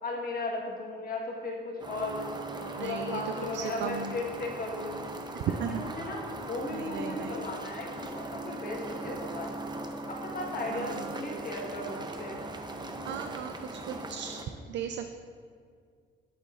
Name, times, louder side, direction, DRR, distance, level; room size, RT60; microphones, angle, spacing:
voice 1, 0.0-2.3 2.6-5.0 5.6-9.5 10.1-12.4, left 2 dB, 45° left, -1 dB, 1.4 m, -36 dB
sound 1, 1.8-14.4, right 2 dB, 20° right, 0.7 m, -39 dB
voice 2, 2.8-3.2 3.5-4.1 5.3-5.8 6.7-7.4 10.7-11.4 13.0-14.4 14.7-15.1, right 7 dB, 65° right, 7 dB, 0.4 m, -36 dB
8.1 x 8.0 x 2.5 m, 2.2 s
cardioid pair, 90°, 20 cm